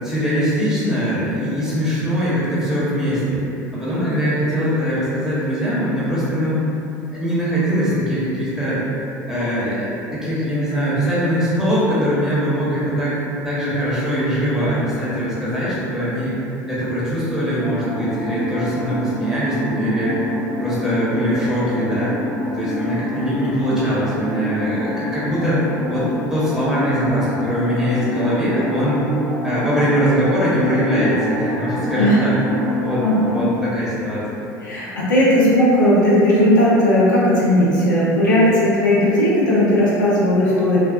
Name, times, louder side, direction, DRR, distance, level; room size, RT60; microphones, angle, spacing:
voice 1, 0.0-3.4 3.7-6.6 7.1-8.8 9.3-13.2 13.4-16.4 16.7-20.2 20.6-22.1 22.5-25.6 25.9-29.0 29.4-32.4 32.8-34.4, equal, 5° right, -11 dB, 1.0 m, -21 dB
sound 1, 17.6-33.4, left 1 dB, 20° right, 0.8 m, -27 dB
voice 2, 33.0-33.5 34.6-40.8, left 1 dB, 85° left, -8 dB, 0.7 m, -16 dB
2.5 x 2.2 x 2.5 m, 2.9 s
hypercardioid pair, 70°, 10 cm